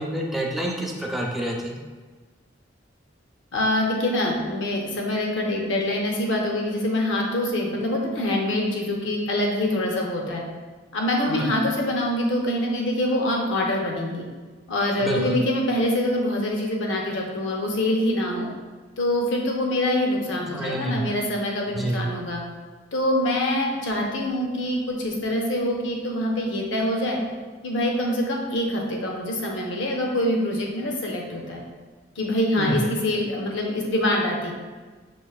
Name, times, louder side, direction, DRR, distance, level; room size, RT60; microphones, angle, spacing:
voice 1, 0.0-1.8 11.3-11.5 15.0-15.4 20.5-21.0 21.7-22.0 32.6-32.8, right 1 dB, ahead, -2 dB, 0.5 m, -28 dB
voice 2, 3.5-10.4 10.9-14.3 14.7-18.5 19.0-22.4 22.9-27.2 27.6-31.6 32.2-34.5, left 1 dB, 85° left, 0 dB, 0.7 m, -25 dB
6.0 x 2.5 x 2.4 m, 1.4 s
head